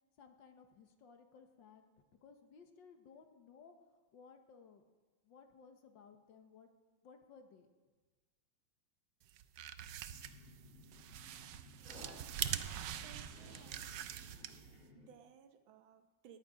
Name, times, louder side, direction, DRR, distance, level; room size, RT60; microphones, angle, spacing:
voice 1, 0.2-1.8 2.2-4.8 5.2-6.7 7.0-7.7, left 5 dB, 70° left, 6 dB, 1.9 m, -60 dB
sound 1, 9.3-14.8, right 10 dB, 70° right, 1.2 m, -44 dB
sound 2, 10.1-15.1, left 2 dB, 40° left, 6.0 m, -59 dB
voice 2, 11.9-12.7 13.0-13.9 14.9-16.4, right 7 dB, 85° right, 8 dB, 1.7 m, -60 dB
18.5 x 9.0 x 5.1 m, 1.3 s
omnidirectional pair, 2.1 m